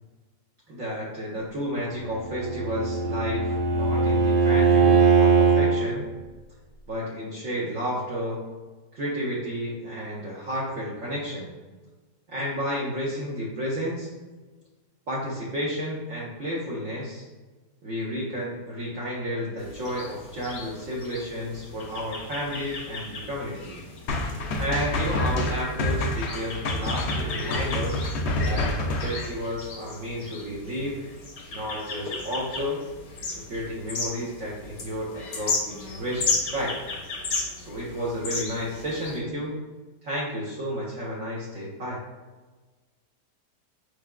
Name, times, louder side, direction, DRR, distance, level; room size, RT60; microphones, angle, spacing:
voice 1, 0.7-6.1 6.9-8.4 8.9-11.5 12.3-14.1 15.1-17.2 17.8-23.8 24.6-28.0 28.4-31.0 31.5-32.8 33.2-36.7 37.6-39.6 40.0-42.0, equal, 60° right, -6 dB, 1.1 m, -31 dB
Bowed string instrument, 2.1-5.8, right 4 dB, 85° right, 2.2 m, -20 dB
sound 1, 19.6-39.2, left 3 dB, 85° left, 1.5 m, -35 dB
sound 2, 24.1-29.3, left 1 dB, 70° left, 0.6 m, -27 dB
4.7 x 4.6 x 2.2 m, 1.3 s
omnidirectional pair, 1.8 m